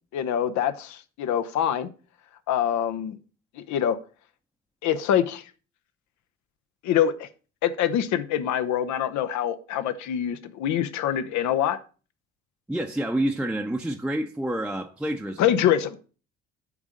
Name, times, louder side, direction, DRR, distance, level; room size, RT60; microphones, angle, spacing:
voice 1, 0.1-1.9 2.5-3.2 3.6-4.0 4.8-5.4 6.8-7.3 7.6-11.8 15.4-16.0, left 10 dB, 55° left, 0.8 m, -25 dB
voice 2, 12.7-15.6, right 1 dB, 5° right, 0.8 m, -28 dB
9.6 x 3.6 x 5.0 m
figure-of-eight pair, 50°, 35 cm